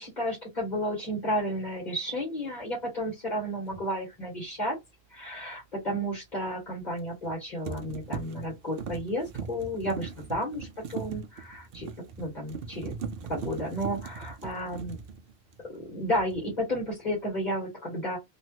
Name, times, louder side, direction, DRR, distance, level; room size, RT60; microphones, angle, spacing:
voice 1, 0.0-4.8 5.1-11.9 12.2-12.9 13.3-15.0 15.7-18.2, equal, 45° left, 1.6 m, -32 dB
sound 1, 3.7-3.9 7.0-7.3 7.7-15.8 16.1-16.6, right 6 dB, 65° right, 0.7 m, -40 dB
3.1 x 2.5 x 2.9 m
omnidirectional pair, 1.1 m